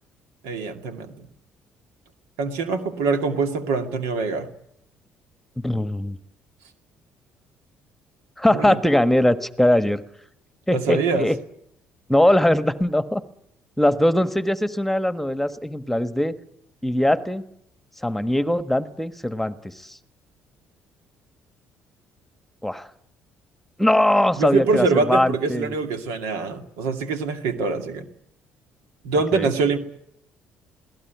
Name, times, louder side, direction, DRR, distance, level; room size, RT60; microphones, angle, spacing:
voice 1, 0.4-1.3 2.4-4.5 8.5-8.8 10.7-11.3 24.3-28.1 29.0-29.8, right 4 dB, 85° right, 7 dB, 2.3 m, -24 dB
voice 2, 5.6-6.2 8.4-10.0 10.7-11.4 12.1-13.2 13.8-16.3 16.8-17.4 18.0-20.0 22.6-22.9 23.8-25.7 29.3-29.5, left 1 dB, 5° left, 11 dB, 1.4 m, -21 dB
21.5 x 17.5 x 9.4 m, 0.75 s
supercardioid pair, 70°, 5 cm